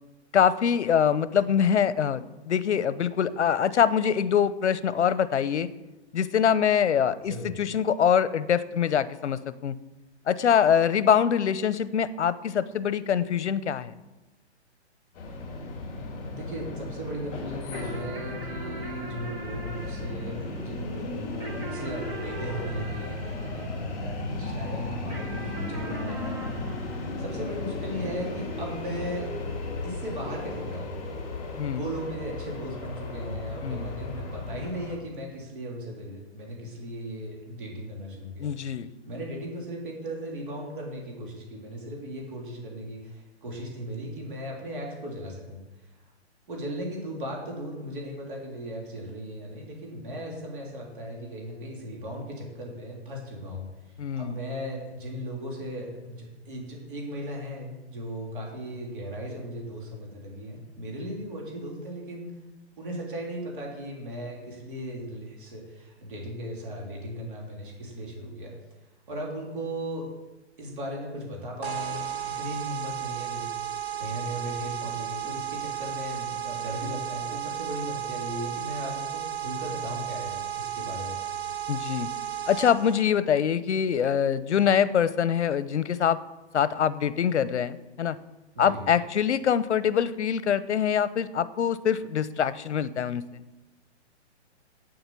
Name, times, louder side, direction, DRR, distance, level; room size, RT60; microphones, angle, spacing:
voice 1, 0.3-5.7 6.1-9.7 10.3-13.9 31.6-31.8 33.6-33.8 38.4-38.9 54.0-54.4 81.7-82.1 82.5-86.2 86.5-88.2 88.6-93.2, left 8 dB, 80° left, 15 dB, 0.9 m, -24 dB
sound 1, 15.1-35.0, left 2 dB, 35° left, 3.1 m, -35 dB
voice 2, 16.3-26.5 27.2-29.3 29.8-30.9 31.7-38.5 39.0-45.6 46.5-62.4 62.8-68.6 69.1-70.1 70.6-73.5 74.0-81.2 88.5-88.8, equal, 50° right, -1 dB, 3.2 m, -37 dB
sound 2, 17.7-24.4 25.1-27.9, right 1 dB, 10° right, 0.9 m, -43 dB
sound 3, 71.6-83.0, right 11 dB, 65° right, 2.5 m, -34 dB
8.7 x 7.9 x 8.4 m, 1.1 s
hypercardioid pair, 170°, 34 cm